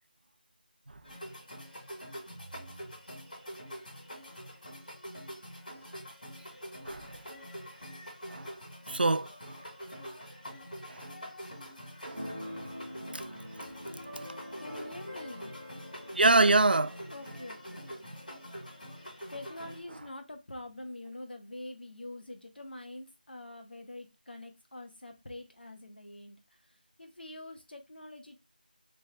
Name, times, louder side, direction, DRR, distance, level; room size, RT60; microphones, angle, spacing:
sound 1, 1.0-19.8, equal, 60° left, 1.8 m, -45 dB
voice 1, 8.9-9.3 10.9-11.1 12.0-12.3 16.2-17.0, right 2 dB, 75° right, 0.3 m, -25 dB
Keyboard (musical), 12.1-19.6, equal, 20° left, 0.9 m, -46 dB
voice 2, 14.6-15.5 17.1-17.8 19.3-26.4 27.0-28.4, left 1 dB, 80° left, 0.9 m, -45 dB
3.1 x 2.1 x 3.6 m
figure-of-eight pair, 180°, 5 cm